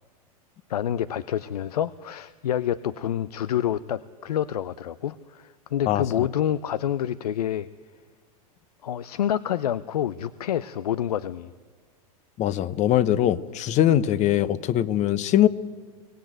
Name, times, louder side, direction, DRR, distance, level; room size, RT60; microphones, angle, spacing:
voice 1, 0.7-7.7 8.8-11.5, left 10 dB, 90° left, 17 dB, 0.6 m, -28 dB
voice 2, 12.4-15.5, left 12 dB, 40° left, 16 dB, 0.9 m, -21 dB
24.0 x 17.0 x 9.0 m, 1.5 s
hypercardioid pair, 115°, 19 cm